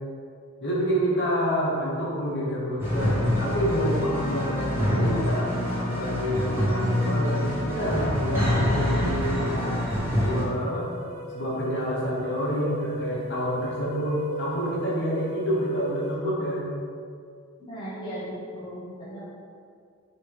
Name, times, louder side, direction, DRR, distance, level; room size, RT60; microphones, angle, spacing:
voice 1, 0.6-9.8 10.1-10.9 11.3-16.7, equal, 55° left, -6 dB, 1.2 m, -28 dB
sound 1, 2.8-10.4, left 1 dB, 10° right, 1.0 m, -26 dB
sound 2, 10.1-16.1, right 3 dB, 40° right, 1.1 m, -37 dB
voice 2, 17.6-19.3, equal, 20° left, -9 dB, 1.0 m, -37 dB
3.3 x 3.1 x 4.6 m, 2.2 s
head